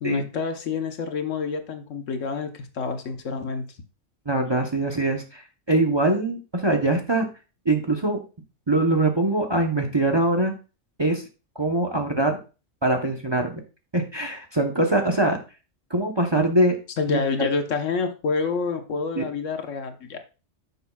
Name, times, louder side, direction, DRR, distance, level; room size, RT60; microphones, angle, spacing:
voice 1, 0.0-3.7 17.0-20.2, left 4 dB, 75° left, 6 dB, 1.3 m, -28 dB
voice 2, 4.3-7.3 7.6-8.2 8.7-10.5 11.0-11.3 11.6-12.4 12.8-13.6 13.9-15.4 15.9-16.8 17.1-17.5 19.2-19.3, right 2 dB, 25° right, 4 dB, 0.8 m, -23 dB
9.8 x 7.0 x 2.3 m, 0.32 s
omnidirectional pair, 1.3 m